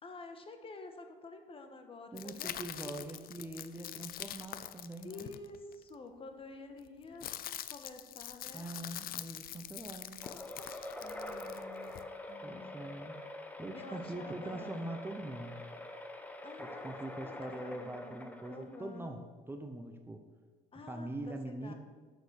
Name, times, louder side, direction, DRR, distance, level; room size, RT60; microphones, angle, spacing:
voice 1, 0.0-3.1 5.0-7.3 7.7-8.7 11.0-12.8 13.7-14.9 16.4-16.9 17.2-19.2 20.7-21.7, left 3 dB, 35° left, 6 dB, 1.5 m, -50 dB
voice 2, 2.1-5.3 8.5-10.2 12.4-13.2 13.6-15.6 16.6-20.2 20.7-21.7, right 2 dB, 15° right, 5 dB, 0.9 m, -43 dB
sound 1, 2.2-5.9 6.8-12.0, left 12 dB, 60° left, 0.6 m, -44 dB
sound 2, 10.2-19.0, left 1 dB, 10° left, 1.1 m, -46 dB
11.5 x 6.8 x 6.5 m, 1.5 s
cardioid pair, 110°, 17 cm